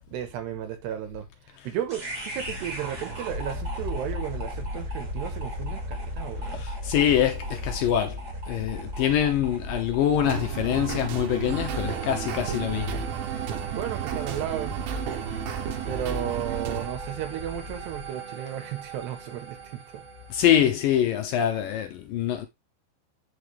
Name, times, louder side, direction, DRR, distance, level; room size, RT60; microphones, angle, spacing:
voice 1, 0.1-6.6 13.2-14.8 15.9-20.0, right 10 dB, 75° right, 3.2 m, -34 dB
sound 1, 1.9-18.1, left 1 dB, 25° right, 2.6 m, -37 dB
voice 2, 6.5-8.2 8.5-13.1 20.3-22.5, left 10 dB, 80° left, 2.0 m, -25 dB
sound 2, 10.2-16.9, right 7 dB, 90° right, 3.7 m, -32 dB
sound 3, 11.5-20.8, right 7 dB, 45° right, 2.5 m, -41 dB
8.8 x 6.2 x 3.4 m
omnidirectional pair, 5.2 m